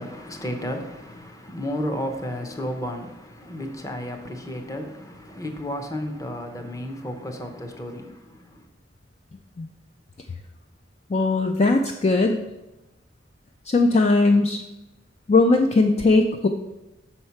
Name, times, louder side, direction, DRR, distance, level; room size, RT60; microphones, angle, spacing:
voice 1, 0.0-8.7, equal, 15° left, 0.7 m, -33 dB
voice 2, 11.1-12.4 13.7-14.6 15.3-16.5, left 3 dB, 35° left, 0.4 m, -19 dB
6.4 x 4.4 x 5.7 m
head